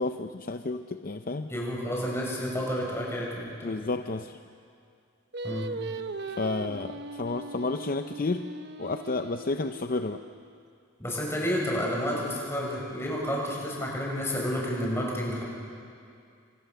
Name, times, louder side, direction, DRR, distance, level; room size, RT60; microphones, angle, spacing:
voice 1, 0.0-1.5 3.6-4.4 6.3-8.5 8.8-10.2, left 3 dB, 45° left, 8 dB, 0.6 m, -31 dB
voice 2, 1.5-3.7 5.4-5.6 11.0-15.4, equal, 10° left, -3 dB, 6.7 m, -30 dB
Singing, 5.3-10.6, right 2 dB, 55° right, 0.9 m, -39 dB
28.5 x 26.0 x 6.9 m, 2.4 s
head